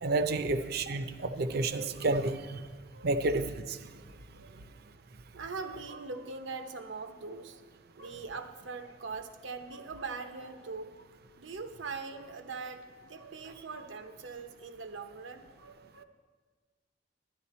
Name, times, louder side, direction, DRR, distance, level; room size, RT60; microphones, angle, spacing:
voice 1, 0.0-2.6 3.0-3.9, right 2 dB, 55° right, 10 dB, 0.5 m, -30 dB
voice 2, 5.3-7.6 8.0-11.1 11.4-16.0, right 4 dB, 90° right, 7 dB, 0.8 m, -42 dB
11.0 x 10.5 x 4.2 m, 1.5 s
head